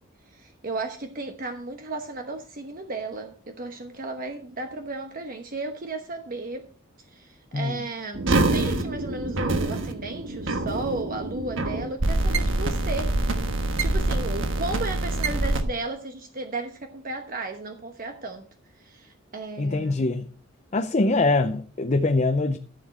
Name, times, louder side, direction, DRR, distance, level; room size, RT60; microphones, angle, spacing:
voice 1, 0.3-6.7 7.1-8.2 8.5-13.1 13.8-18.5 18.8-20.0, right 2 dB, 45° right, 1.1 m, -34 dB
sound 1, 8.1-15.6, right 2 dB, 65° right, 1.4 m, -25 dB
voice 2, 19.6-20.3 20.7-22.6, left 2 dB, 35° left, 0.6 m, -23 dB
14.5 x 7.1 x 4.3 m
head